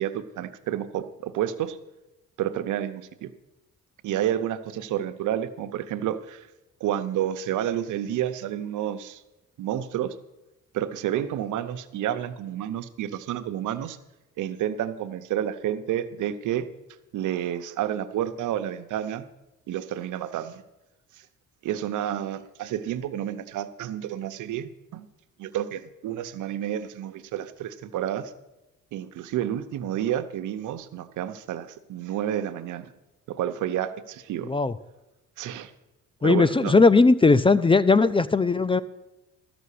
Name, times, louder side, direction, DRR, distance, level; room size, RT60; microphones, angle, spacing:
voice 1, 0.0-1.8 2.4-3.3 4.0-6.5 6.8-9.2 9.6-10.1 10.7-14.0 14.4-16.7 17.1-19.3 19.7-20.6 21.6-25.1 25.4-28.3 28.9-32.9 33.3-34.5 35.4-35.7 36.2-36.7, right 11 dB, 80° right, 10 dB, 0.8 m, -30 dB
voice 2, 36.2-38.8, left 3 dB, 20° left, 17 dB, 0.4 m, -18 dB
13.5 x 6.1 x 8.4 m, 0.97 s
cardioid pair, 90°, 30 cm